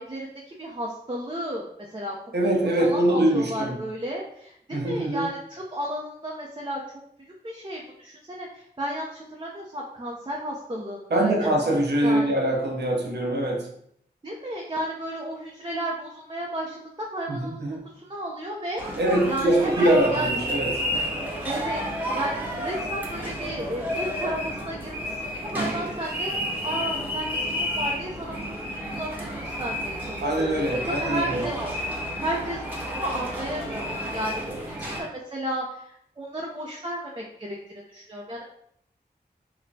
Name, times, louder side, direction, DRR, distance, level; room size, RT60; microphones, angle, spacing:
voice 1, 0.0-1.7 1.9-2.2 2.8-11.5 12.0-12.3 14.2-19.0 19.3-20.3 21.4-30.2 30.8-31.5 32.0-38.4, right 1 dB, 25° right, -2 dB, 0.6 m, -33 dB
voice 2, 2.3-3.8 4.7-5.3 11.1-13.7 17.3-17.8 19.0-20.8 30.2-31.4, right 1 dB, 80° right, 0 dB, 0.7 m, -23 dB
sound 1, 18.8-35.0, equal, 10° right, 1.0 m, -31 dB
4.2 x 2.2 x 2.7 m, 0.71 s
cardioid pair, 45°, 17 cm